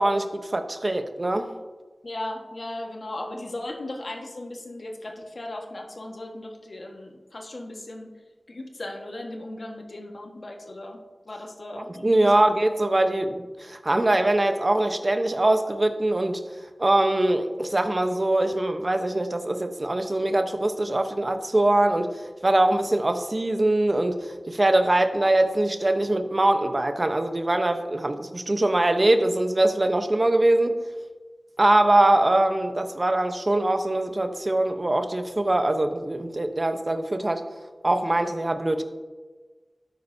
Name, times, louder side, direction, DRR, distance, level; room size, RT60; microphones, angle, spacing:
voice 1, 0.0-1.5 11.8-16.4 16.8-22.1 22.4-30.8 31.6-37.4 37.8-38.8, right 1 dB, 45° right, 7 dB, 0.9 m, -22 dB
voice 2, 2.0-8.1 8.5-12.5, left 1 dB, 65° left, 1 dB, 1.6 m, -37 dB
13.0 x 9.9 x 2.8 m, 1.3 s
cardioid pair, 40°, 0 cm